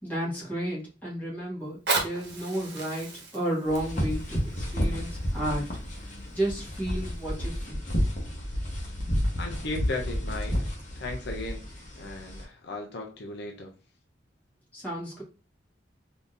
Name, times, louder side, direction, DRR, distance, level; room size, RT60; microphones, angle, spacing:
voice 1, 0.0-5.7 6.3-7.8 14.7-15.2, right 1 dB, 10° left, -6 dB, 1.4 m, -32 dB
Fire, 1.6-6.6 7.2-7.3, right 3 dB, 60° right, 1.0 m, -35 dB
sound 1, 3.7-12.4, equal, 40° left, 1.0 m, -31 dB
voice 2, 9.4-10.6 11.0-11.6 12.0-13.7, left 2 dB, 60° left, 2 dB, 0.5 m, -36 dB
3.7 x 2.7 x 2.5 m, 0.34 s
head